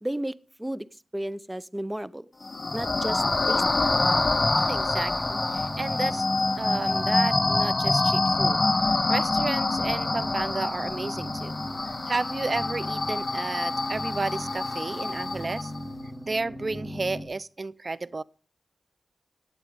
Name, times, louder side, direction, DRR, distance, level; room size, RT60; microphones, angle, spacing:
voice 1, 0.0-2.3 2.7-3.8, right 1 dB, 15° right, 0.7 m, -33 dB
sound 1, 2.4-15.8, left 2 dB, 40° left, 1.0 m, -26 dB
sound 2, 3.9-17.2, equal, ahead, 4.1 m, -38 dB
voice 2, 4.6-6.2 6.6-15.7 16.3-18.2, right 3 dB, 45° right, 0.6 m, -32 dB
15.5 x 9.0 x 5.1 m
cardioid pair, 40°, 0 cm